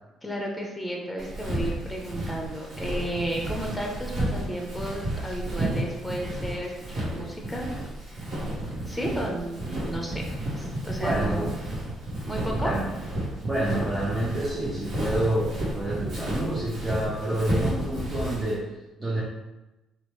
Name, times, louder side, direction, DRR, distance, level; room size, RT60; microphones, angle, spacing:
voice 1, 0.2-7.7 8.1-8.2 8.9-10.2 10.6-11.5 12.2-12.7, right 1 dB, 10° left, 0 dB, 0.7 m, -33 dB
Walk footsteps, 1.2-18.5, right 1 dB, 60° right, 1.1 m, -32 dB
voice 2, 11.0-11.5 12.6-12.9 13.4-19.2, right 1 dB, 25° right, -7 dB, 0.7 m, -28 dB
2.8 x 2.1 x 3.0 m, 1.0 s
hypercardioid pair, 55°, 0 cm